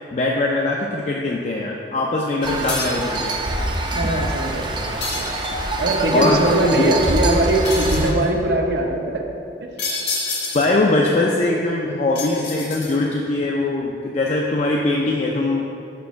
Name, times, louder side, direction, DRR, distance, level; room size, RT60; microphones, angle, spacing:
voice 1, 0.1-3.4 6.1-6.4 6.7-7.0 10.5-15.7, left 2 dB, 40° left, -1 dB, 0.4 m, -21 dB
sound 1, 2.4-8.1, right 2 dB, 25° right, 0.5 m, -25 dB
sound 2, 2.7-3.1 5.0-5.8 7.6-8.2 9.8-10.8 12.1-13.2, left 3 dB, 70° left, 1.4 m, -28 dB
voice 2, 3.9-5.3 5.8-9.2 9.6-9.7, right 1 dB, 70° right, 2 dB, 0.7 m, -21 dB
5.1 x 4.5 x 5.6 m, 2.7 s
head